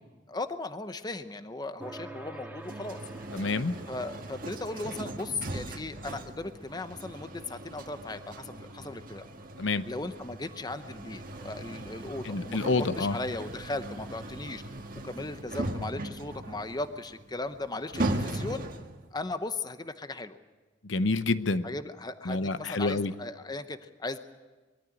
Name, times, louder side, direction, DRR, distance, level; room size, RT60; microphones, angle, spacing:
voice 1, 0.3-3.0 3.9-9.3 9.9-14.6 15.0-18.7 19.1-20.4 21.6-24.2, left 2 dB, 20° left, 10 dB, 0.8 m, -37 dB
sound 1, 1.8-16.7, right 2 dB, 10° right, 1.6 m, -51 dB
sound 2, 2.6-19.0, right 1 dB, 50° right, 1.6 m, -39 dB
voice 2, 3.3-3.7 9.6-9.9 12.2-13.1 20.8-21.6 22.3-23.1, left 3 dB, 80° left, 13 dB, 0.8 m, -28 dB
22.5 x 14.0 x 9.8 m, 1.3 s
head